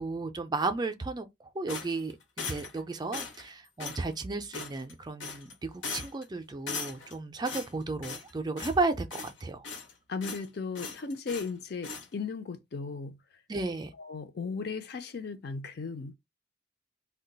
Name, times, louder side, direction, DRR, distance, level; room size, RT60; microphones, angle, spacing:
voice 1, 0.0-9.6 13.5-13.9, right 3 dB, 20° right, 0.4 m, -34 dB
sound 1, 1.7-2.8 3.1-3.5 3.8-4.0 4.5-4.9 5.2-5.5 5.8-6.2 6.7-7.1 7.4-8.3 8.6-8.8 9.1-9.9 10.2-10.5 10.7-11.5 11.8-12.1, left 4 dB, 80° left, 0.8 m, -39 dB
voice 2, 10.1-13.2 14.0-16.1, left 4 dB, 55° left, 0.5 m, -36 dB
2.3 x 2.2 x 3.9 m
head